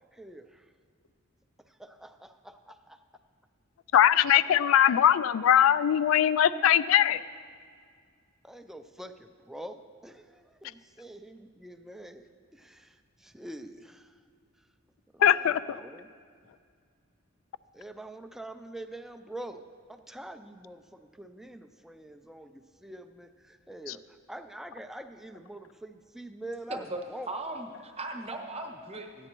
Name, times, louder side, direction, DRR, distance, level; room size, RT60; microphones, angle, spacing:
voice 1, 0.1-0.7 1.7-3.0 8.4-14.2 15.1-16.1 17.7-27.3, right 1 dB, ahead, 8 dB, 0.3 m, -45 dB
voice 2, 3.9-7.2 15.2-15.8, left 10 dB, 85° left, 17 dB, 0.3 m, -21 dB
voice 3, 26.7-27.0 27.3-29.3, right 2 dB, 30° right, 3 dB, 0.9 m, -38 dB
14.5 x 9.7 x 3.0 m, 2.1 s
head